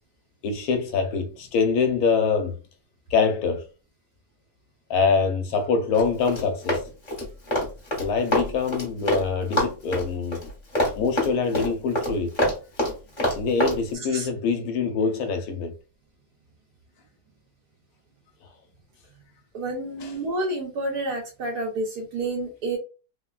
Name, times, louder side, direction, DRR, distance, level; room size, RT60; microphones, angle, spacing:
voice 1, 0.4-2.6 3.1-3.6 4.9-6.8 8.0-10.5 11.0-12.4 13.4-15.7 20.0-20.1, left 5 dB, 70° left, 1.0 m, -24 dB
Run, 5.9-9.3 9.5-13.8, left 1 dB, 30° left, 1.0 m, -25 dB
voice 2, 19.5-22.8, right 2 dB, 80° right, 1.2 m, -29 dB
3.2 x 2.2 x 2.2 m
omnidirectional pair, 1.7 m